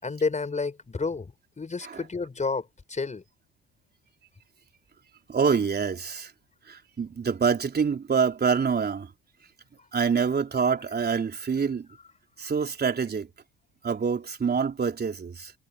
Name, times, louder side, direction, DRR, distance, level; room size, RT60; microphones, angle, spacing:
voice 1, 0.0-3.2, left 4 dB, 25° left, 5.1 m, -30 dB
voice 2, 5.3-6.3 6.7-9.1 9.9-11.9 12.4-13.3 13.8-15.5, right 6 dB, 35° right, 3.9 m, -26 dB
hypercardioid pair, 60°, 30 cm